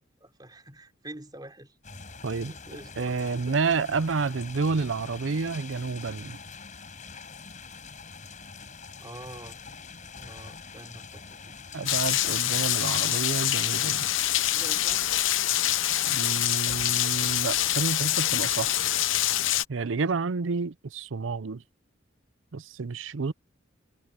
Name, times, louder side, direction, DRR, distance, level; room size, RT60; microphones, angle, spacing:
voice 1, 0.0-1.8 2.4-3.2 9.0-9.6 10.1-11.6 14.5-15.1, right 1 dB, 20° right, 4.2 m, -46 dB
sound 1, 1.8-19.6, left 4 dB, 40° left, 5.6 m, -45 dB
voice 2, 3.0-6.4 11.7-14.1 16.1-18.8 19.7-21.6 22.5-23.3, right 4 dB, 80° right, 0.6 m, -29 dB
Rain, 11.9-19.6, left 13 dB, 85° left, 0.9 m, -25 dB
head